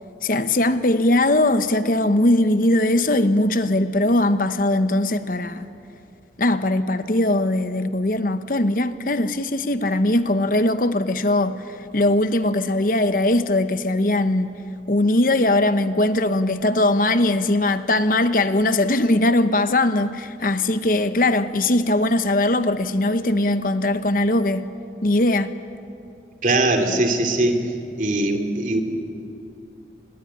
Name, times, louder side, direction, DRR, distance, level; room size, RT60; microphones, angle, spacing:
voice 1, 0.2-5.7 6.4-14.5 14.9-24.7 25.0-25.5, left 1 dB, 50° left, 11 dB, 1.0 m, -20 dB
voice 2, 26.4-27.6 28.0-28.8, right 2 dB, 45° right, 5 dB, 2.7 m, -20 dB
27.0 x 20.5 x 9.9 m, 2.6 s
head